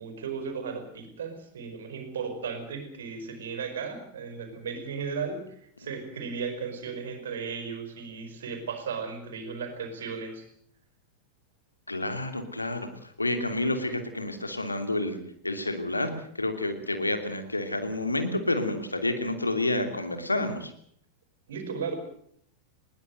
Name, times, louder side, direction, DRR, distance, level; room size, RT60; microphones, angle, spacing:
voice 1, 0.0-10.4 21.5-21.9, right 5 dB, 65° right, 8 dB, 5.0 m, -35 dB
voice 2, 11.9-15.2 15.4-16.1 16.4-20.7, left 2 dB, 80° left, 7 dB, 3.0 m, -29 dB
21.0 x 19.0 x 7.9 m, 0.64 s
figure-of-eight pair, 90°, 0 cm